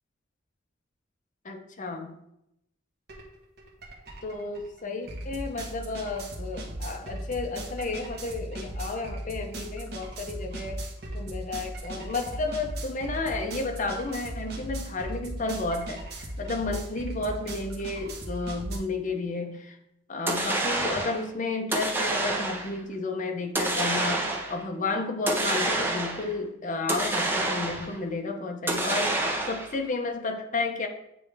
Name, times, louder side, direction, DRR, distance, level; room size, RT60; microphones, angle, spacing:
voice 1, 1.4-2.1 4.2-10.8 11.1-19.8 20.1-30.9, left 3 dB, 40° left, 3 dB, 0.8 m, -32 dB
sound 1, 3.1-3.2 3.6-18.8, right 1 dB, 55° right, 1.3 m, -37 dB
sound 2, 20.3-21.2 21.7-22.8 23.5-24.6 25.3-26.3 26.9-28.0 28.7-29.8, right 2 dB, 10° right, 0.7 m, -28 dB
8.6 x 3.3 x 3.4 m, 0.80 s
head